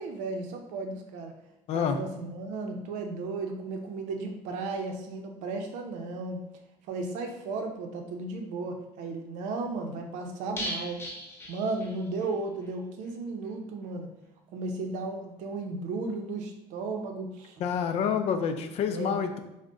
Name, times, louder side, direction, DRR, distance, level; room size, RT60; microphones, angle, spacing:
voice 1, 0.0-1.3 1.7-6.4 6.9-11.0 11.5-14.1 14.5-17.6 18.9-19.4, right 3 dB, 75° right, 4 dB, 0.6 m, -35 dB
voice 2, 1.7-2.0 17.6-19.4, left 7 dB, 55° left, 7 dB, 0.4 m, -28 dB
sound 1, 10.6-12.3 12.6-12.7 13.0-13.1, equal, 20° left, 0.7 m, -38 dB
3.6 x 2.1 x 3.6 m, 0.93 s
cardioid pair, 105°, 12 cm